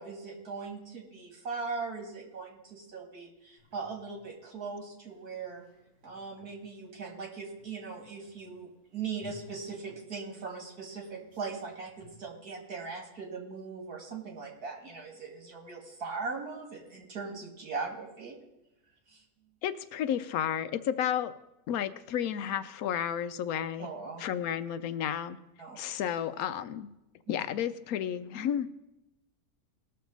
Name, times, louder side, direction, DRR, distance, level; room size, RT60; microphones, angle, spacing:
voice 1, 0.0-5.6 6.0-18.4 19.1-19.2 23.8-24.2 25.6-25.8 27.3-27.4, right 4 dB, 85° right, 1 dB, 2.6 m, -40 dB
sound 1, 3.6-12.1, left 3 dB, 25° right, 3.0 m, -59 dB
voice 2, 19.6-21.3 21.7-23.9 24.2-25.4 25.8-26.9 27.3-28.7, left 9 dB, 75° left, 12 dB, 1.0 m, -32 dB
19.5 x 6.6 x 3.9 m, 0.93 s
omnidirectional pair, 1.6 m